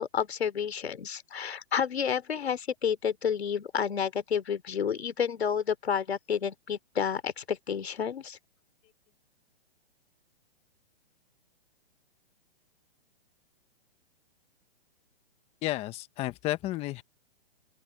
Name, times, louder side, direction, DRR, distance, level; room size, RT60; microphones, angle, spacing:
voice 1, 0.0-8.4, left 7 dB, 80° left, 3.3 m, -30 dB
voice 2, 15.6-17.0, left 16 dB, 20° left, 1.1 m, -32 dB
open air
hypercardioid pair, 145°, 31 cm